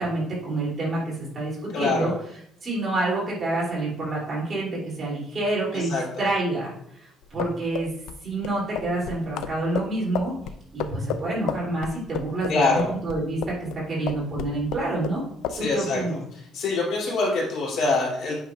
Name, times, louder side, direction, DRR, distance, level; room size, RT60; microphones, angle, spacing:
voice 1, 0.0-2.1 2.6-7.9 8.2-10.3 10.7-15.2 15.6-16.2, right 2 dB, 30° right, -5 dB, 2.8 m, -28 dB
voice 2, 1.7-2.1 5.7-6.0 12.5-12.9 15.5-16.0 16.5-18.3, left 3 dB, 65° left, -4 dB, 2.9 m, -24 dB
sound 1, 7.2-13.8 14.1-15.2 15.4-15.6, left 8 dB, 85° left, 0.5 m, -32 dB
8.8 x 5.7 x 2.4 m, 0.72 s
cardioid pair, 160°, 0 cm